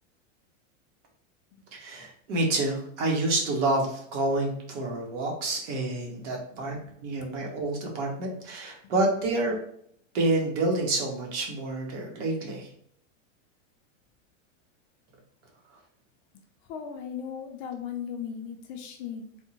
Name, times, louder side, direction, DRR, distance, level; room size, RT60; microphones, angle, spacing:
voice 1, 1.7-6.8 7.0-9.6 10.1-12.7, right 2 dB, 65° right, 0 dB, 1.2 m, -28 dB
voice 2, 6.5-6.8 7.2-7.3 8.8-8.9 16.7-19.3, left 7 dB, 40° left, 4 dB, 0.4 m, -38 dB
3.5 x 2.0 x 2.9 m, 0.67 s
supercardioid pair, 150°, 38 cm